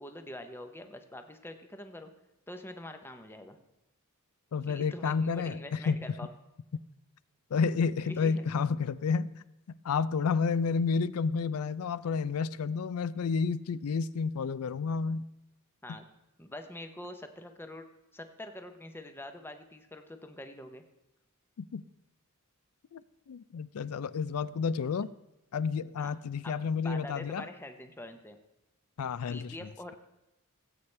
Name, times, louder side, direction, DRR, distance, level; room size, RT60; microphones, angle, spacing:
voice 1, 0.0-2.1 2.5-3.6 4.7-6.3 7.6-8.5 15.8-16.1 16.4-17.9 18.1-20.8 26.0-26.2 26.4-26.6 26.8-28.4 29.3-30.0, left 1 dB, 10° left, 6 dB, 0.7 m, -45 dB
voice 2, 4.5-6.2 7.5-9.3 9.7-15.2 21.6-21.8 22.9-23.0 23.3-25.1 25.5-27.5 29.0-29.5, left 5 dB, 75° left, 18 dB, 0.4 m, -30 dB
17.0 x 8.3 x 3.3 m, 0.95 s
head